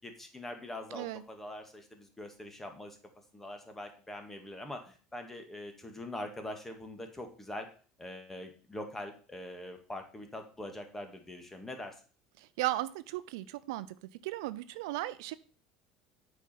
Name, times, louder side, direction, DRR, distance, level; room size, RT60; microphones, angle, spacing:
voice 1, 0.0-3.0 3.3-7.7 8.0-12.0, left 1 dB, 15° left, 5 dB, 1.9 m, -43 dB
voice 2, 12.4-13.9 14.2-15.3, right 16 dB, 85° right, 15 dB, 0.5 m, -36 dB
8.2 x 4.9 x 5.8 m, 0.40 s
supercardioid pair, 110°, 2 cm